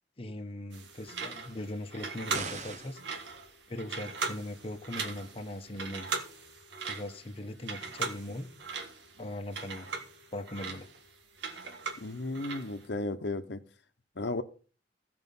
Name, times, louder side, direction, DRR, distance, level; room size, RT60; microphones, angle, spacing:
voice 1, 0.2-3.0 3.7-6.1 6.9-8.5 9.2-9.9 10.3-10.9, left 1 dB, 35° left, 1.0 m, -40 dB
sound 1, 0.7-12.8, right 4 dB, 80° right, 1.7 m, -39 dB
sound 2, 2.3-3.1, right 4 dB, 40° right, 1.1 m, -39 dB
voice 2, 12.0-13.6 14.2-14.4, left 2 dB, 70° left, 1.0 m, -34 dB
15.5 x 5.2 x 5.5 m
head